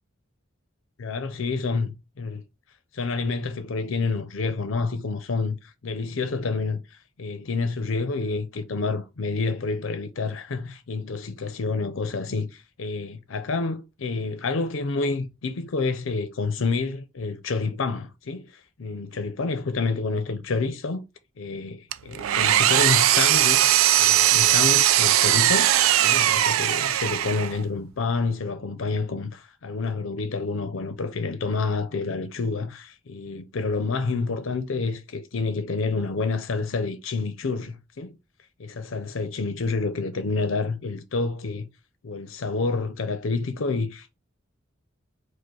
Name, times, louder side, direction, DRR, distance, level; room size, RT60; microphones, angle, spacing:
voice 1, 1.0-2.4 2.9-21.0 21.4-23.7 24.0-38.2 38.6-41.7 42.0-44.1, left 4 dB, 75° left, 0.5 m, -28 dB
Engine, 21.9-27.6, right 12 dB, 85° right, 0.3 m, -19 dB
4.8 x 2.1 x 4.5 m
head